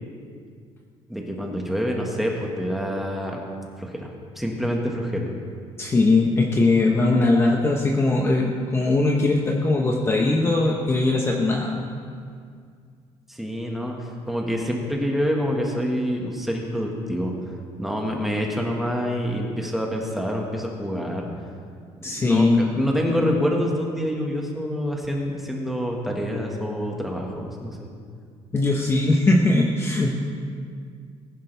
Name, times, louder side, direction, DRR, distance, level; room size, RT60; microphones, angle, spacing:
voice 1, 1.1-3.4 3.8-4.1 4.4-5.3 13.3-17.3 17.8-21.3 22.0-27.9, equal, ahead, -1 dB, 1.7 m, -26 dB
voice 2, 5.8-11.8 22.0-22.7 28.5-30.3, left 2 dB, 20° left, 0 dB, 1.0 m, -20 dB
19.5 x 10.5 x 3.5 m, 2.2 s
cardioid pair, 150°, 11 cm